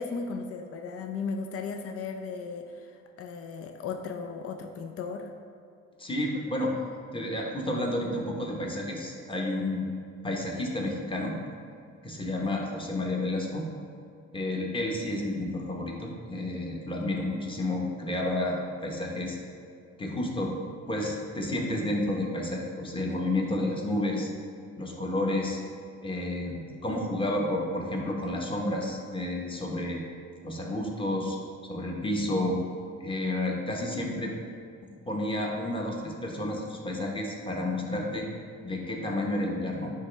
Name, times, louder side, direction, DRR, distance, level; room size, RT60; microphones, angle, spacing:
voice 1, 0.0-5.3, left 4 dB, 50° left, 5 dB, 0.5 m, -36 dB
voice 2, 6.0-6.7 7.1-9.9 10.2-11.4 12.0-13.7 14.3-19.4 20.0-20.6 20.9-24.3 24.8-25.6 26.0-30.0 30.4-31.4 31.7-32.6 33.0-34.3 35.1-38.3 38.6-39.9, left 1 dB, 15° left, -1 dB, 1.1 m, -30 dB
9.5 x 3.2 x 3.4 m, 2.4 s
cardioid pair, 90°, 30 cm